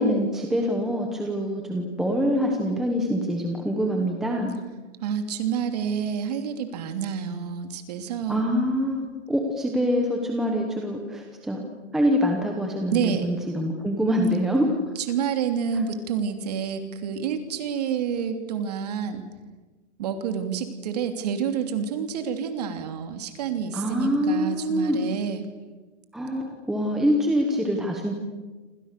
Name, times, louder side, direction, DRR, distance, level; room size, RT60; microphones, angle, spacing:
voice 1, 0.0-4.5 8.3-11.6 11.9-14.7 23.7-25.0 26.1-28.1, equal, ahead, 1 dB, 0.9 m, -25 dB
voice 2, 5.0-8.4 12.9-13.2 14.9-19.2 20.0-25.4, right 7 dB, 35° right, 7 dB, 3.0 m, -28 dB
28.5 x 26.5 x 6.8 m, 1.2 s
hypercardioid pair, 175°, 36 cm